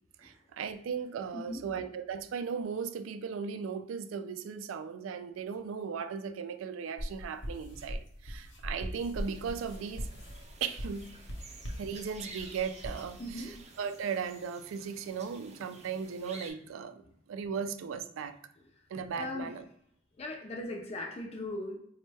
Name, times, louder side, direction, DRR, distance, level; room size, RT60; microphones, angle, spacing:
voice 1, 0.2-10.1 10.6-11.1 11.8-17.0 17.3-18.4 18.9-19.6, right 6 dB, 90° right, 0.3 m, -37 dB
voice 2, 1.3-1.6 13.2-13.6 19.2-19.5 20.2-21.8, left 2 dB, 30° left, 0.4 m, -39 dB
sound 1, 7.0-13.6, equal, 65° left, 0.8 m, -41 dB
sound 2, 9.1-16.5, right 3 dB, 35° right, 0.5 m, -51 dB
4.2 x 2.1 x 3.3 m
head